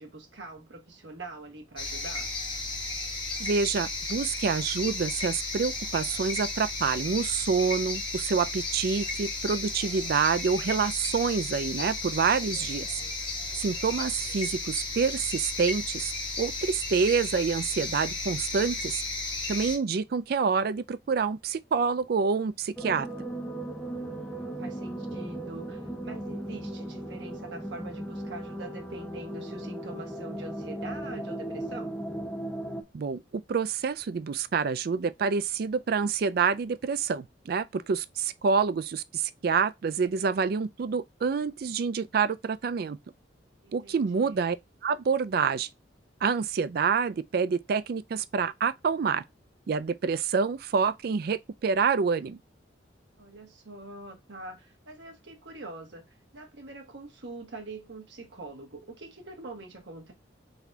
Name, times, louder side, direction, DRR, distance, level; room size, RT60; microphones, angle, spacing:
voice 1, 0.0-2.3 23.9-31.9 43.6-44.4 53.2-56.0 56.3-60.1, right 2 dB, 70° right, 1.4 m, -44 dB
sound 1, 1.8-19.8, left 2 dB, 25° left, 1.3 m, -34 dB
voice 2, 3.4-13.0 13.6-19.0 19.5-23.1 32.9-43.0 43.7-44.6 44.8-45.7 46.2-49.2 49.7-52.4, right 5 dB, 55° right, 0.3 m, -27 dB
sound 2, 22.8-32.8, right 1 dB, 5° left, 0.6 m, -37 dB
4.0 x 2.7 x 4.5 m
head